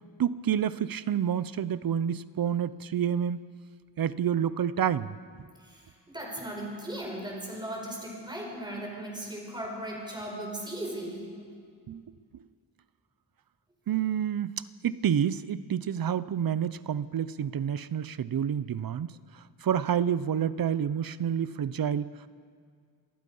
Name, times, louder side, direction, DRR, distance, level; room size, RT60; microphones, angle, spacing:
voice 1, 0.2-3.4 4.0-5.2 11.9-12.0 12.3-12.4 13.9-19.1 19.6-22.2, right 9 dB, 55° right, 16 dB, 0.6 m, -28 dB
voice 2, 6.1-11.3, right 1 dB, 10° right, -1 dB, 5.0 m, -37 dB
27.5 x 19.5 x 5.5 m, 2.1 s
wide cardioid pair, 155°, 42 cm